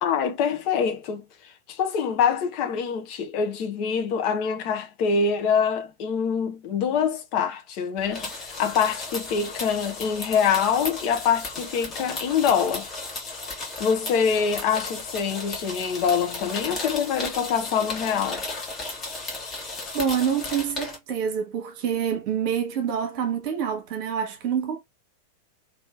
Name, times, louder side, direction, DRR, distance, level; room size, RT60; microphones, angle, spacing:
voice 1, 0.0-12.9 13.8-18.4, left 6 dB, 45° left, 0.9 m, -25 dB
sound 1, 8.0-21.0, left 3 dB, 25° left, 1.4 m, -35 dB
voice 2, 19.9-24.8, right 8 dB, 45° right, 1.1 m, -26 dB
3.2 x 2.8 x 3.1 m
figure-of-eight pair, 90°, 0 cm